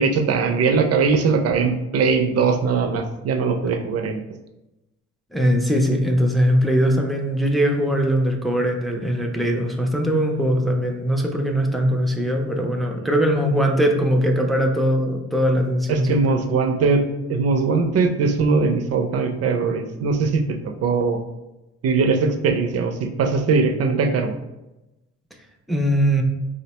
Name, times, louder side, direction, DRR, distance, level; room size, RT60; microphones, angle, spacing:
voice 1, 0.0-4.2 13.0-13.1 15.9-17.0 17.3-20.4 20.8-21.2 21.8-24.4, right 4 dB, 55° right, 6 dB, 0.5 m, -20 dB
voice 2, 5.3-16.4 25.7-26.2, equal, ahead, 2 dB, 0.4 m, -21 dB
3.9 x 2.1 x 2.8 m, 0.98 s
cardioid pair, 90°, 30 cm